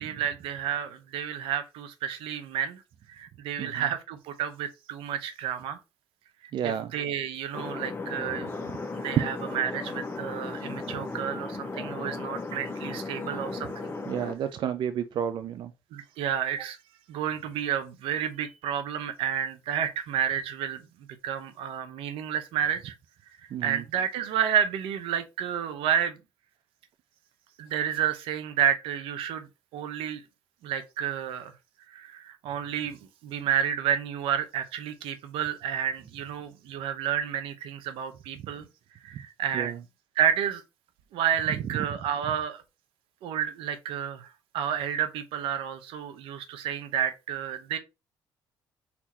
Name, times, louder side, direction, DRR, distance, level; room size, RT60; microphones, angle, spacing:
voice 1, 0.0-2.8 3.1-5.8 6.6-8.5 8.9-13.9 15.9-16.8 17.1-20.9 21.2-22.9 23.6-26.2 27.6-29.5 29.7-30.2 30.6-31.5 31.9-38.7 39.0-39.7 40.2-40.6 41.1-42.6 43.2-47.8, right 9 dB, 80° right, 0.8 m, -30 dB
voice 2, 3.6-3.9 6.5-6.9 10.9-11.0 14.1-15.7 23.5-23.8 38.4-38.5 39.5-39.8, right 8 dB, 60° right, 0.5 m, -32 dB
sound 1, 7.5-14.3, left 3 dB, 25° left, 1.0 m, -36 dB
4.3 x 2.8 x 4.2 m
cardioid pair, 80°, 9 cm